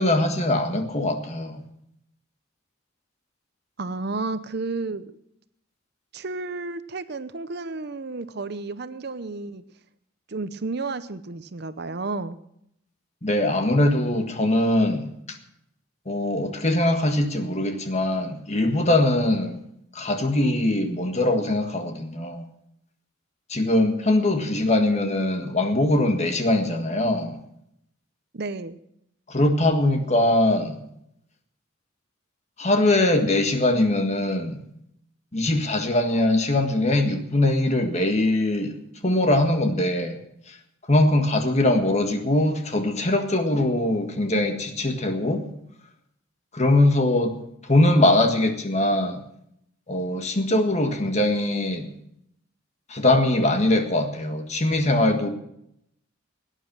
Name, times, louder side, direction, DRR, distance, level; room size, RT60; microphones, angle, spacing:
voice 1, 0.0-1.6 13.2-15.4 16.0-19.6 19.9-22.4 23.5-27.4 29.3-30.8 32.6-34.6 35.3-38.7 39.0-40.2 40.5-40.6 40.9-45.5 46.5-47.4 47.6-49.2 49.9-51.9 52.9-55.3, left 1 dB, 35° left, 6 dB, 1.7 m, -22 dB
voice 2, 3.8-5.0 6.1-9.6 10.3-12.4 28.3-28.8, right 3 dB, 55° right, 13 dB, 0.7 m, -32 dB
17.5 x 10.0 x 6.1 m, 0.75 s
head